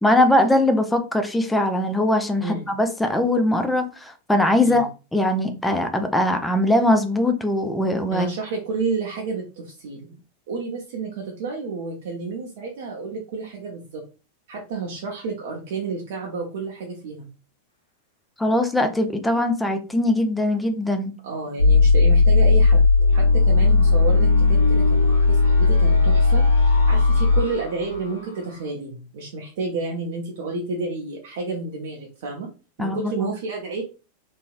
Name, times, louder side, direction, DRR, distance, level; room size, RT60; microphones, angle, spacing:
voice 1, 0.0-8.3 18.4-21.1 32.8-33.3, left 1 dB, 5° left, 0.5 m, -21 dB
voice 2, 8.1-10.1 10.5-14.0 14.5-17.3 21.2-32.5 32.8-33.8, right 4 dB, 55° right, 0.7 m, -30 dB
sound 1, 21.6-28.5, left 3 dB, 80° left, 1.1 m, -17 dB
3.0 x 2.6 x 2.4 m
figure-of-eight pair, 90°, 0 cm